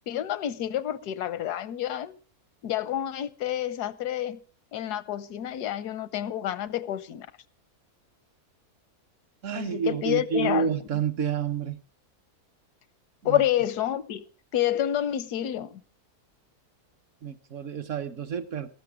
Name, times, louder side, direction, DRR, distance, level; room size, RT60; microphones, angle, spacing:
voice 1, 0.1-2.2 2.6-4.4 4.7-7.3 9.5-10.7 13.2-14.3 14.5-15.8, left 11 dB, 85° left, 1.3 m, -28 dB
voice 2, 9.4-11.8 13.2-13.4 17.2-18.7, right 7 dB, 55° right, 1.2 m, -29 dB
13.5 x 13.0 x 4.8 m
omnidirectional pair, 1.6 m